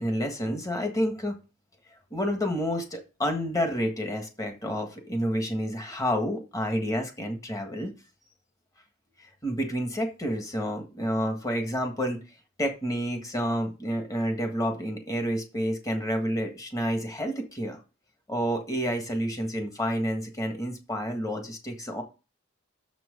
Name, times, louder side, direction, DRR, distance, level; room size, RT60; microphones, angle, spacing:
voice 1, 0.0-1.4 2.1-7.9 9.4-12.2 12.6-17.8 18.3-22.0, equal, 15° left, 4 dB, 1.6 m, -29 dB
6.9 x 6.1 x 6.6 m, 0.31 s
head